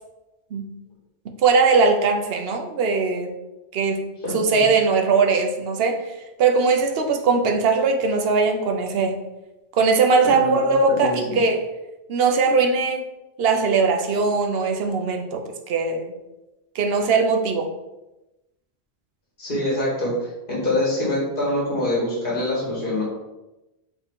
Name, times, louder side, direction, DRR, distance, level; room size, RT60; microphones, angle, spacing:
voice 1, 1.4-3.3 3.7-4.0 4.3-6.0 6.4-9.2 9.8-11.6 12.1-13.0 13.4-16.1 16.7-17.7, right 4 dB, 70° right, 4 dB, 0.8 m, -20 dB
voice 2, 4.2-4.6 10.2-11.4 19.4-23.0, left 1 dB, 50° left, -5 dB, 1.7 m, -25 dB
4.4 x 2.7 x 3.6 m, 0.98 s
omnidirectional pair, 1.1 m